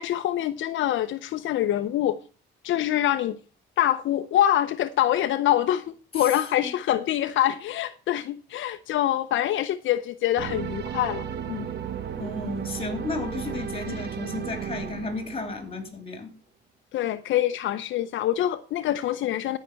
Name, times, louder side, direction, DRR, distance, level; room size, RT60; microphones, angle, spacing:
voice 1, 0.0-2.2 2.6-3.4 3.8-11.7 13.9-14.0 16.9-19.6, left 12 dB, 75° left, 0.6 m, -25 dB
sound 1, 10.4-15.9, right 8 dB, 60° right, 1.1 m, -34 dB
voice 2, 12.2-16.3, left 3 dB, 30° left, 3.4 m, -33 dB
13.5 x 5.8 x 6.2 m
cardioid pair, 90°, 20 cm